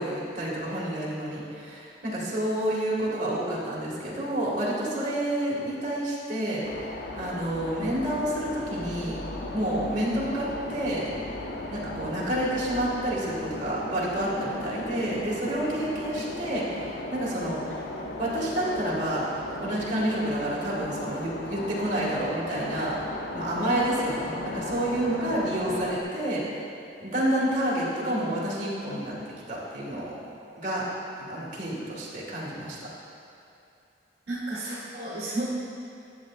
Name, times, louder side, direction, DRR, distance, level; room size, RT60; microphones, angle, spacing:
voice 1, 0.0-9.2 9.5-11.1 11.7-17.7 18.2-19.3 19.6-23.0 23.3-26.4 27.0-29.2 29.5-30.2 30.6-30.8 31.2-32.8, right 1 dB, 45° right, -6 dB, 1.8 m, -29 dB
sound 1, 6.6-26.0, left 2 dB, 65° left, 0.6 m, -36 dB
sound 2, 7.3-17.2, left 1 dB, 25° left, 0.9 m, -47 dB
voice 2, 34.3-35.5, right 1 dB, 65° right, -8 dB, 1.2 m, -32 dB
10.5 x 7.3 x 2.4 m, 2.7 s
head